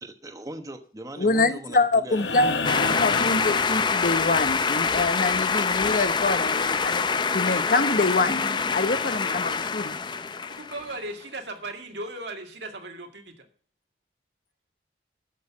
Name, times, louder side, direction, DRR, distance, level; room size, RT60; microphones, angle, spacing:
voice 1, 0.0-2.5, right 1 dB, 20° right, 1.0 m, -40 dB
voice 2, 1.2-8.4 8.7-10.0, left 3 dB, 50° left, 0.8 m, -25 dB
sound 1, 2.1-4.4 6.2-6.3, left 4 dB, 75° left, 1.0 m, -30 dB
sound 2, 2.6-11.0, left 5 dB, 25° left, 0.5 m, -25 dB
voice 3, 10.5-13.5, right 2 dB, 80° right, 2.1 m, -37 dB
12.5 x 6.5 x 7.2 m
head